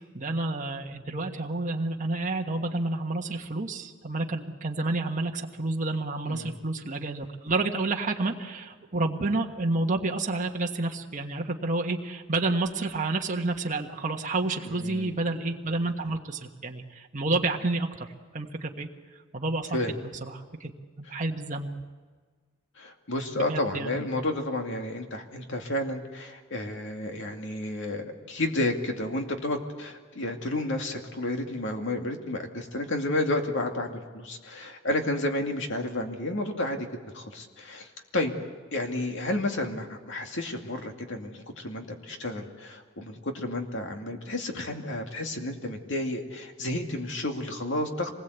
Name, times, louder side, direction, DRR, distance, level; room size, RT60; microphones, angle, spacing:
voice 1, 0.1-18.1 18.3-18.9 19.3-19.8 20.2-20.7 21.0-21.7 23.3-24.0, right 2 dB, 40° right, 2 dB, 1.4 m, -29 dB
voice 2, 14.6-15.2 19.7-19.9 22.8-36.9 37.1-37.9 38.1-38.3 38.7-48.1, left 1 dB, 65° left, 3 dB, 2.5 m, -31 dB
26.0 x 20.0 x 8.2 m, 1.5 s
head